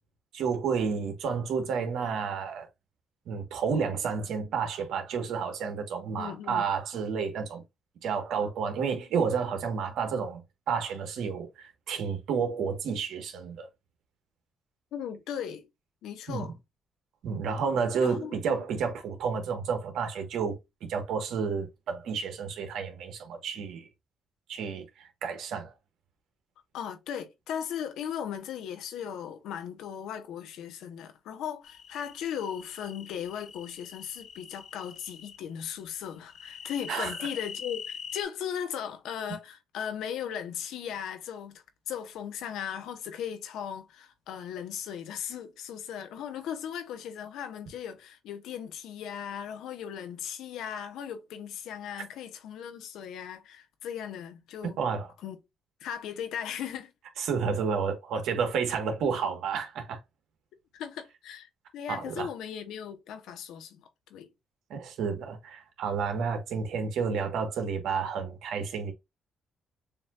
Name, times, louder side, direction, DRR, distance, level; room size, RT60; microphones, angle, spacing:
voice 1, 0.3-2.7 3.3-7.6 8.0-13.7 16.3-16.5 17.2-23.9 24.5-25.7 36.9-37.1 54.8-55.1 57.2-60.0 61.9-62.3 64.7-68.9, right 6 dB, 80° right, 1.4 m, -31 dB
voice 2, 6.2-6.7 14.9-15.7 16.0-16.5 18.0-18.4 26.7-54.8 55.2-55.4 55.8-56.9 60.7-64.3, left 8 dB, 85° left, 1.1 m, -37 dB
sound 1, 31.6-35.4 36.3-38.2, left 7 dB, 65° left, 0.8 m, -43 dB
7.0 x 2.8 x 2.4 m
cardioid pair, 90°, 0 cm